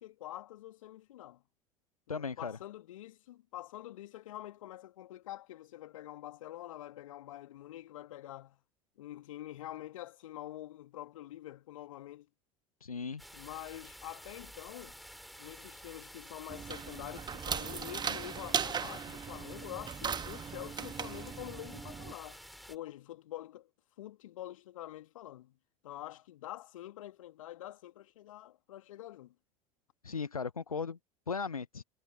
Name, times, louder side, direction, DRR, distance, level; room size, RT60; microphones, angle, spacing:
voice 1, 0.0-1.4 2.1-8.6 9.0-12.3 13.3-15.0 15.4-22.4 22.7-23.7 24.0-25.6 25.8-29.3, left 14 dB, 65° left, 2.2 m, -46 dB
voice 2, 2.1-2.6 12.8-13.2 30.0-31.0 31.3-31.8, left 5 dB, 85° left, 0.9 m, -37 dB
sound 1, 13.2-22.8, equal, ahead, 7.5 m, -51 dB
sound 2, 16.5-22.1, right 7 dB, 25° right, 1.4 m, -38 dB
figure-of-eight pair, 70°, 18 cm